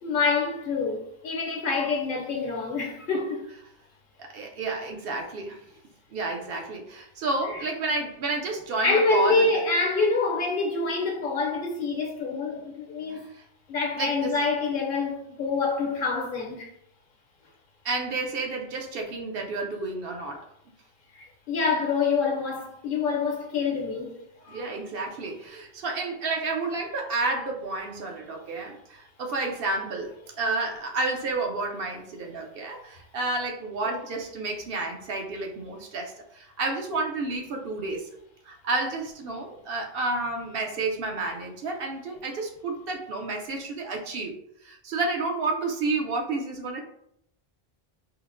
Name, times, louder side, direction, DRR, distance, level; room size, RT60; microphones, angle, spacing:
voice 1, 0.0-3.5 7.5-7.6 8.8-13.3 13.7-16.7 21.1-24.6, left 4 dB, 60° left, 0.7 m, -26 dB
voice 2, 4.2-5.6 6.1-9.5 13.1-13.4 14.0-14.4 17.8-20.5 24.5-38.1 38.4-44.3 44.6-46.9, right 3 dB, 70° right, 0.8 m, -30 dB
4.6 x 2.1 x 2.4 m
omnidirectional pair, 1.0 m